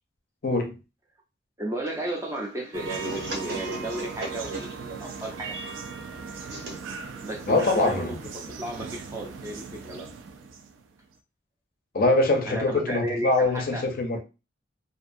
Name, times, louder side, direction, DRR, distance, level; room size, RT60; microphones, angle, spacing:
voice 1, 0.4-0.7 7.5-8.2 11.9-14.2, left 2 dB, 45° left, 0.5 m, -23 dB
voice 2, 1.6-5.7 7.2-8.3 8.6-10.1 12.5-13.9, right 1 dB, 15° right, 0.4 m, -34 dB
sound 1, 1.8-8.5, right 1 dB, 55° right, 0.9 m, -40 dB
sound 2, 2.7-11.0, right 5 dB, 75° right, 0.4 m, -39 dB
2.5 x 2.3 x 2.5 m
head